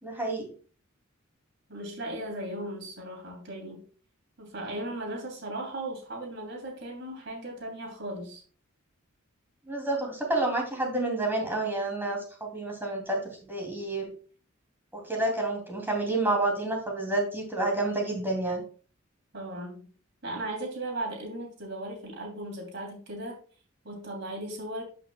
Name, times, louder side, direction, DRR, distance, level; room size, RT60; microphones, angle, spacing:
voice 1, 0.0-0.5 9.7-14.1 14.9-18.6, right 2 dB, 10° right, 2.6 m, -29 dB
voice 2, 1.7-3.8 4.4-8.4 19.3-19.9 20.2-23.4 23.8-24.8, right 1 dB, 60° right, 3.0 m, -37 dB
12.0 x 5.8 x 2.3 m
head